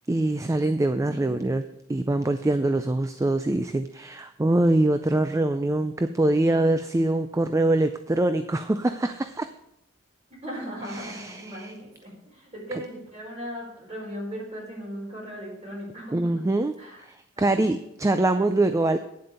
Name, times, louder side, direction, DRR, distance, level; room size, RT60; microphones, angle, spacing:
voice 1, 0.1-1.6 1.9-9.5 11.0-11.7 16.1-16.7 17.0-19.0, right 2 dB, 15° right, 9 dB, 0.4 m, -24 dB
voice 2, 10.4-16.2 16.8-17.0 17.4-17.9, equal, 30° right, -3 dB, 4.7 m, -38 dB
9.7 x 7.7 x 5.3 m, 0.79 s
head